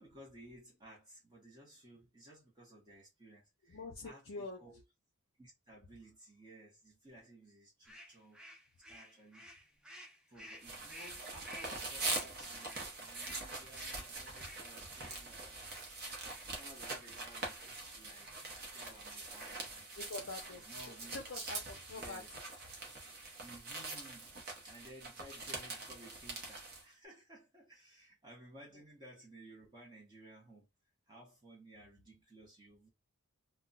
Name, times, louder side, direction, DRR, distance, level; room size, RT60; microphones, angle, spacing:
voice 1, 0.0-4.8 5.4-8.6 8.9-9.7 10.3-15.7 16.5-20.0 20.6-21.2 21.9-22.3 23.4-24.3 24.6-30.7 31.1-32.9, right 1 dB, 20° right, 0.8 m, -57 dB
voice 2, 3.7-4.6 20.0-20.7 21.1-22.2, left 3 dB, 55° left, 0.5 m, -45 dB
sound 1, 7.9-15.9 16.2-16.5 16.9-17.1 17.5-17.8 18.1-18.6, left 1 dB, 5° right, 0.4 m, -54 dB
sound 2, 10.6-26.8, right 3 dB, 45° right, 0.8 m, -44 dB
2.2 x 2.2 x 3.8 m
head